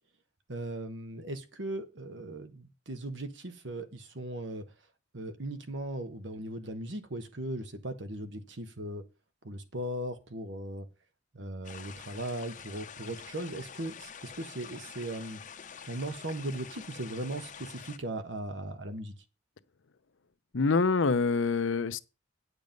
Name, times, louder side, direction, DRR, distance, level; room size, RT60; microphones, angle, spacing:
voice 1, 0.5-4.6 5.1-9.0 9.4-10.9 11.3-15.4 15.9-19.1, right 1 dB, 65° right, 1.4 m, -38 dB
sound 1, 11.6-18.0, left 7 dB, 40° left, 0.8 m, -47 dB
voice 2, 20.5-22.0, left 4 dB, 80° left, 0.7 m, -26 dB
9.3 x 6.8 x 5.3 m
head